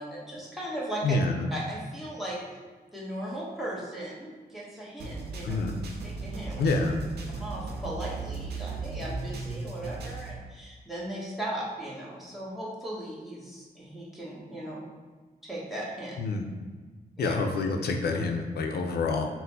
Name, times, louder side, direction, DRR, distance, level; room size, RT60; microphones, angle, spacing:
voice 1, 0.0-1.2 1.5-2.4 2.9-5.6 6.0-6.7 7.4-14.8 15.4-16.2 17.2-17.3, right 1 dB, ahead, -7 dB, 1.1 m, -37 dB
voice 2, 1.0-1.5 5.4-5.7 6.6-7.0 16.2-16.5 17.2-19.3, left 3 dB, 85° left, 4 dB, 0.4 m, -27 dB
sound 1, 5.0-10.3, right 3 dB, 90° right, 0.5 m, -36 dB
4.1 x 2.1 x 4.0 m, 1.4 s
cardioid pair, 95°, 16 cm